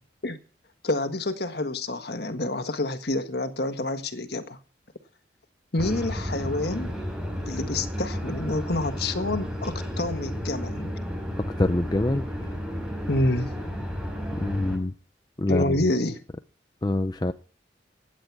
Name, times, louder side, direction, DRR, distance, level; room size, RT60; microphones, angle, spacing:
voice 1, 0.8-4.6 5.7-6.9 7.5-10.9 13.1-13.5 15.5-16.2, left 2 dB, 60° left, 1.5 m, -28 dB
sound 1, 5.8-14.8, equal, 5° right, 5.7 m, -32 dB
voice 2, 11.6-12.3 14.4-14.9 15.4-15.7 16.8-17.3, left 1 dB, 20° left, 0.6 m, -24 dB
16.5 x 10.0 x 4.8 m
head